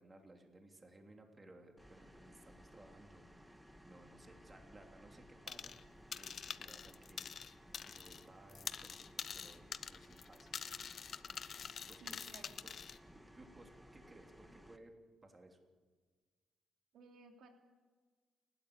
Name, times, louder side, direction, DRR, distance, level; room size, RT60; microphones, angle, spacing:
voice 1, 0.0-5.7 6.1-7.5 7.8-10.5 11.8-12.3 12.6-12.7 13.0-14.9 15.2-15.6, right 2 dB, 25° right, 3 dB, 3.2 m, -60 dB
sound 1, 1.8-14.8, equal, 5° right, 1.8 m, -60 dB
sound 2, 5.5-5.8 6.1-8.2 8.5-13.0, left 7 dB, 50° left, 1.0 m, -46 dB
voice 2, 12.0-12.6 16.9-17.5, right 3 dB, 75° right, 3 dB, 3.0 m, -58 dB
29.0 x 12.5 x 8.7 m, 1.5 s
cardioid pair, 90°, 0 cm